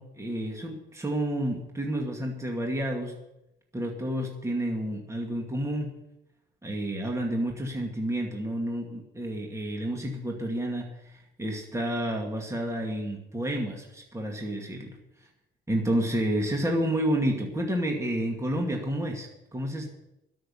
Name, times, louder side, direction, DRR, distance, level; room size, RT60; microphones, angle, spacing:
voice 1, 0.0-3.1 3.7-6.0 6.6-15.0 15.7-19.9, right 1 dB, 15° right, 1 dB, 2.3 m, -30 dB
13.0 x 6.4 x 9.8 m, 0.90 s
cardioid pair, 90°, 20 cm